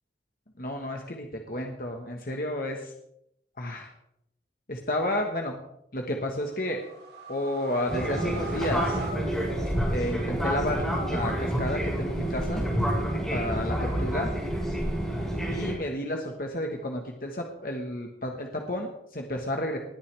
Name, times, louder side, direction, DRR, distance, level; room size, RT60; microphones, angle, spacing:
voice 1, 0.6-2.9 3.6-3.9 4.7-5.6 5.9-6.8 7.3-9.0 9.9-12.6 13.3-14.3 15.5-19.8, left 1 dB, 50° left, 2 dB, 1.4 m, -31 dB
sound 1, 6.4-10.2, right 2 dB, 75° right, 3.9 m, -40 dB
Fixed-wing aircraft airplane, 7.9-15.7, equal, ahead, 6.2 m, -28 dB
20.5 x 9.3 x 3.4 m, 0.75 s
head